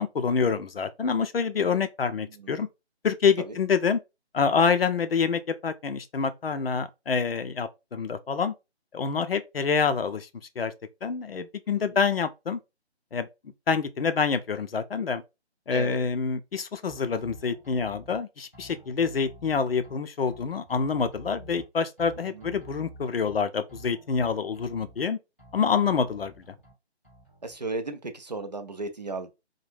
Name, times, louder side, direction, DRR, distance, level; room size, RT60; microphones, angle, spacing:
voice 1, 0.0-2.7 3.0-4.0 4.3-8.5 8.9-10.3 10.6-10.7 11.0-12.6 13.1-13.3 13.7-15.2 15.7-25.2 25.5-26.3, left 5 dB, 60° left, 0.5 m, -26 dB
sound 1, 16.9-18.2 18.5-19.9 20.3-21.7 22.0-23.4 23.7-25.1 25.4-26.7 27.0-27.6, right 1 dB, 10° left, 0.5 m, -49 dB
voice 2, 27.4-29.3, right 2 dB, 40° right, 0.4 m, -35 dB
2.6 x 2.1 x 3.2 m
figure-of-eight pair, 155°, 33 cm